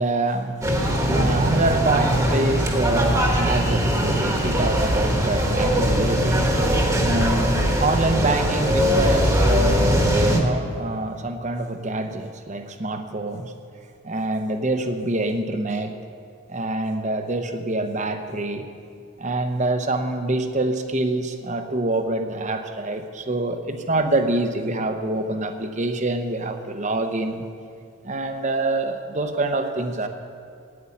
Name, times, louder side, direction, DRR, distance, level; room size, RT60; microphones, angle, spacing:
voice 1, 0.0-13.5 14.0-15.9 16.5-18.7 19.2-27.5 28.0-30.1, right 2 dB, 35° right, 7 dB, 0.8 m, -26 dB
sound 1, 0.6-10.4, equal, 15° right, 1.2 m, -20 dB
9.6 x 9.5 x 8.6 m, 2.3 s
head